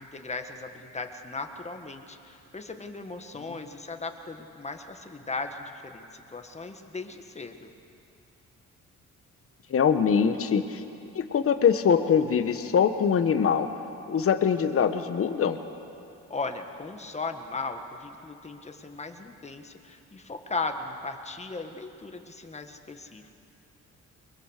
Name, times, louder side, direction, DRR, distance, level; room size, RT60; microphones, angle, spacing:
voice 1, 0.0-7.7 16.3-23.3, left 3 dB, 20° left, 6 dB, 1.7 m, -37 dB
voice 2, 9.7-10.8 11.1-13.7 14.1-15.6, left 7 dB, 50° left, 8 dB, 1.3 m, -23 dB
22.0 x 21.5 x 6.7 m, 2.7 s
cardioid pair, 90°, 30 cm